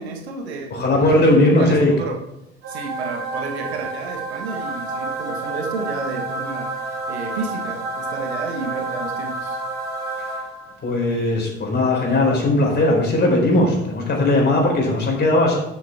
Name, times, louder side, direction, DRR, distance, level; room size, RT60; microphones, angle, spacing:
voice 1, 0.0-2.2 2.7-9.6, right 4 dB, 75° right, 3 dB, 1.6 m, -31 dB
voice 2, 0.7-1.9 10.3-10.4 10.8-15.5, left 2 dB, 30° left, -1 dB, 4.5 m, -18 dB
sound 1, 2.6-10.9, right 2 dB, 40° right, 3.4 m, -29 dB
12.5 x 7.1 x 3.6 m, 0.83 s
figure-of-eight pair, 60°, 33 cm